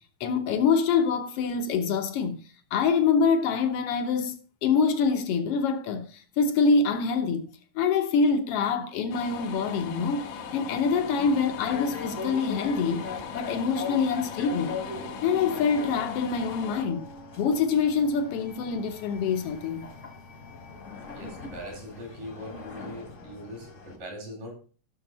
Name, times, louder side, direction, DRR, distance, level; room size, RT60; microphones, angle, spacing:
voice 1, 0.2-2.4 2.7-7.5 7.7-13.0 13.3-14.8 15.2-17.1 17.4-19.8, left 5 dB, 70° left, 1.5 m, -25 dB
sound 1, 9.1-16.9, left 5 dB, 85° left, 2.8 m, -39 dB
sound 2, 10.3-24.0, left 5 dB, 40° left, 1.1 m, -41 dB
voice 2, 21.1-24.5, equal, 80° right, 5.6 m, -41 dB
14.5 x 6.4 x 4.1 m
omnidirectional pair, 3.7 m